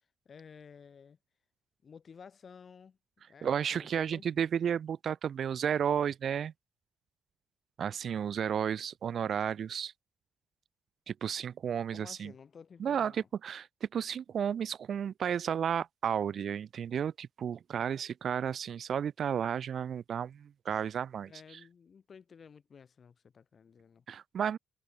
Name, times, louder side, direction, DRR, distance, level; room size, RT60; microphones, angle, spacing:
voice 1, 0.2-1.2 1.8-4.4 11.9-13.3 21.3-24.0, left 6 dB, 45° left, 6.3 m, -54 dB
voice 2, 3.4-6.5 7.8-9.9 11.1-12.3 12.8-21.6 24.1-24.6, right 8 dB, 55° right, 0.4 m, -33 dB
cardioid pair, 90°, 0 cm